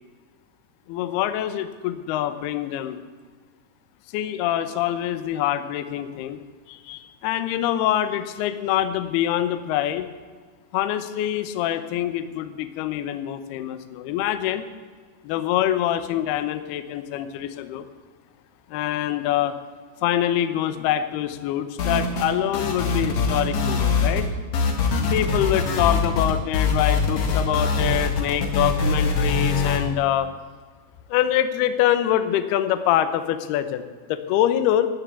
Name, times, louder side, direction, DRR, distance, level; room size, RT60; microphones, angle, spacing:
voice 1, 0.9-3.0 4.1-6.4 6.7-10.1 10.7-14.7 15.2-17.8 18.7-19.5 20.0-24.3 25.1-30.3 31.1-33.8 34.1-34.9, left 11 dB, 85° left, 11 dB, 2.2 m, -25 dB
sound 1, 21.8-22.3 22.5-24.3 24.5-29.8, left 4 dB, 70° left, 1.7 m, -23 dB
14.0 x 10.0 x 8.1 m, 1.5 s
omnidirectional pair, 5.9 m